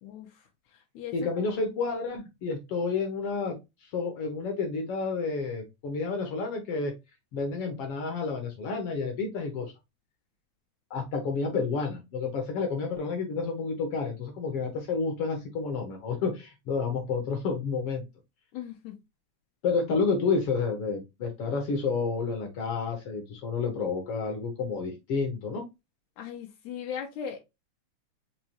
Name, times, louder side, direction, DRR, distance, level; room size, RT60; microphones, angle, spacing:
voice 1, 0.0-1.3 12.6-12.7 18.5-19.0 26.2-27.4, left 8 dB, 90° left, 1 dB, 2.0 m, -39 dB
voice 2, 1.1-3.6 3.8-6.9 7.3-9.7 10.9-18.0 19.6-25.6, left 4 dB, 70° left, 3 dB, 1.4 m, -30 dB
5.4 x 2.3 x 2.8 m, 0.23 s
omnidirectional pair, 3.3 m